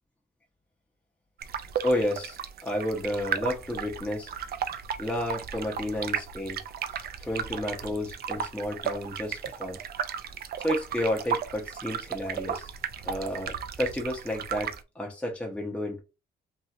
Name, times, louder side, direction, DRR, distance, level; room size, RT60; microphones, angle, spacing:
sound 1, 1.4-14.8, right 8 dB, 50° right, 0.4 m, -35 dB
voice 1, 1.8-4.3 5.0-6.6 6.9-9.8 10.6-12.7 13.0-16.0, left 1 dB, 5° left, 0.7 m, -31 dB
2.8 x 2.7 x 2.4 m
cardioid pair, 90°, 20 cm